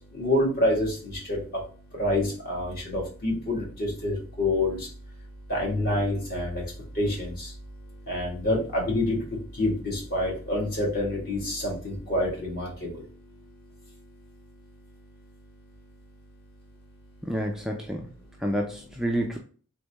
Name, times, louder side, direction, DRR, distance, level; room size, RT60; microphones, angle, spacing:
voice 1, 0.1-1.4 2.0-4.8 5.5-6.6 7.0-7.5 8.1-9.2 9.6-12.9, left 1 dB, 40° left, -2 dB, 1.9 m, -27 dB
voice 2, 17.2-18.1 18.4-19.4, equal, ahead, 0 dB, 0.4 m, -29 dB
4.1 x 3.6 x 3.5 m, 0.41 s
head